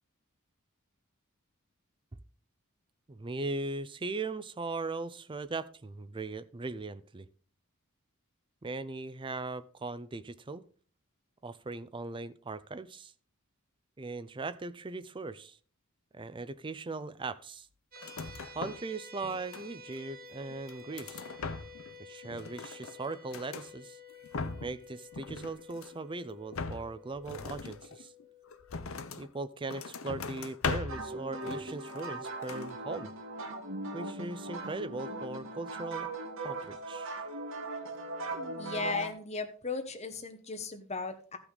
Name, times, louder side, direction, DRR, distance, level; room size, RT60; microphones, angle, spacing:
voice 1, 3.1-7.3 8.6-10.6 11.4-13.1 14.0-15.6 16.1-17.7 18.5-21.2 22.0-24.0 24.6-28.1 29.2-33.1 33.9-36.1 36.4-37.2, right 3 dB, 25° right, 14 dB, 0.5 m, -39 dB
sound 1, 17.9-29.1, left 3 dB, 40° right, 1.2 m, -52 dB
sound 2, 18.0-18.9 19.2-20.0 20.5-21.9 22.2-23.7 24.1-24.8 25.1-26.1 26.5-29.3 29.7-31.1 31.4-32.2 32.4-32.7, left 4 dB, 65° left, 0.7 m, -40 dB
sound 3, 30.9-39.1, right 2 dB, 65° right, 1.6 m, -39 dB
voice 2, 38.6-41.4, left 3 dB, 30° left, 7 dB, 1.2 m, -36 dB
14.0 x 5.9 x 4.0 m, 0.43 s
head